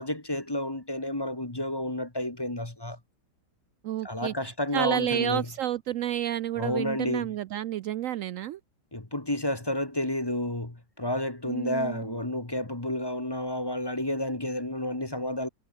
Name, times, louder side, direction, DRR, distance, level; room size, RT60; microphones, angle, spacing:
voice 1, 0.0-3.0 4.0-5.4 6.6-7.3 8.9-15.5, left 1 dB, 15° left, 1.4 m, -31 dB
voice 2, 3.8-8.6 11.5-12.2, right 11 dB, 90° right, 0.7 m, -30 dB
omnidirectional pair, 2.0 m